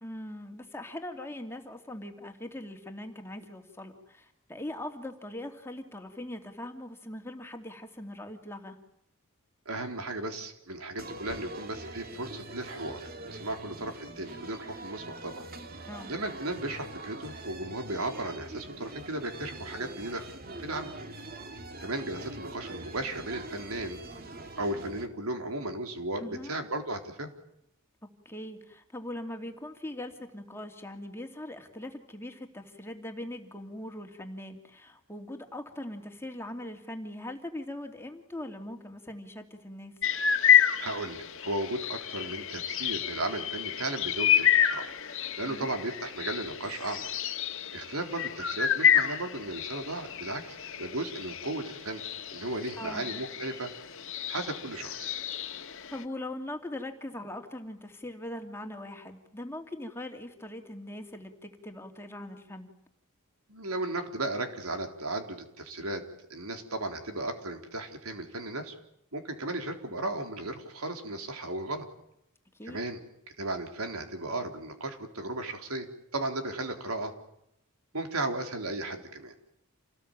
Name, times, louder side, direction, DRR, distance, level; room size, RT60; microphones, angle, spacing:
voice 1, 0.0-8.8 15.9-16.2 26.2-26.6 28.2-40.0 45.5-45.7 52.8-53.1 55.6-62.7 72.5-72.8, left 1 dB, 10° left, 4 dB, 2.8 m, -41 dB
voice 2, 9.7-13.0 13.3-15.4 16.1-20.3 20.6-20.9 21.8-24.0 24.6-27.3 40.8-44.9 45.4-47.1 47.7-52.0 52.3-53.7 54.3-55.1 63.5-66.0 66.3-68.7 69.1-71.9 72.7-73.0 73.4-77.1 77.9-79.3, right 2 dB, 85° right, 5 dB, 3.9 m, -35 dB
sound 1, 11.0-25.1, right 2 dB, 45° right, 2.4 m, -43 dB
sound 2, 40.0-56.0, left 9 dB, 65° left, 1.8 m, -29 dB
28.5 x 19.5 x 8.9 m, 0.79 s
head